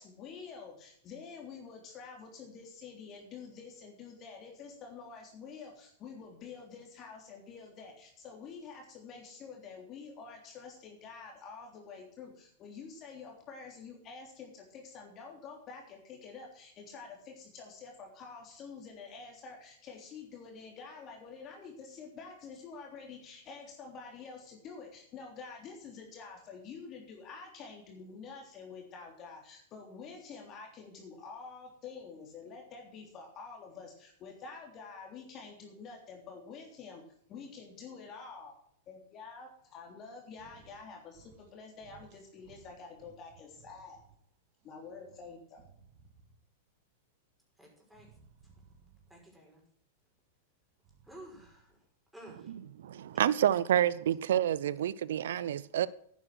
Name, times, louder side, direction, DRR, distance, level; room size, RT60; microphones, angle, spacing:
voice 1, 0.0-37.0 37.3-38.5 38.9-44.0 44.6-45.6, left 5 dB, 35° left, 3.3 m, -48 dB
sound 1, 40.3-40.8 41.1-41.5 41.8-44.2 44.6-46.5 47.9-49.3 50.7-51.8, right 6 dB, 50° right, 2.1 m, -61 dB
voice 2, 47.6-48.2 49.1-49.6 51.0-51.8 52.1-52.5, right 1 dB, 5° right, 5.5 m, -52 dB
voice 3, 52.8-55.9, right 11 dB, 70° right, 0.5 m, -28 dB
11.0 x 9.3 x 6.3 m
hypercardioid pair, 100°, 0 cm